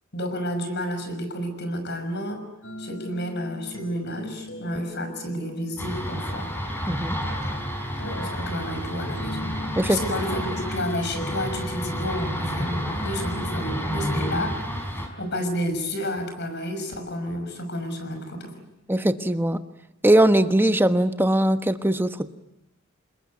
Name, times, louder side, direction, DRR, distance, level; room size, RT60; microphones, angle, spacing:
voice 1, 0.1-2.4 2.8-6.5 8.0-9.6 9.9-14.6 15.2-18.5, equal, 55° left, 7 dB, 6.0 m, -30 dB
sound 1, 2.6-13.7, left 1 dB, 85° left, 4.6 m, -41 dB
sound 2, 5.8-15.1, equal, 10° left, 5.0 m, -30 dB
voice 2, 6.9-7.2 9.8-10.0 18.9-19.6 20.0-22.3, right 1 dB, 10° right, 9 dB, 1.1 m, -20 dB
28.0 x 21.0 x 9.5 m, 0.88 s
head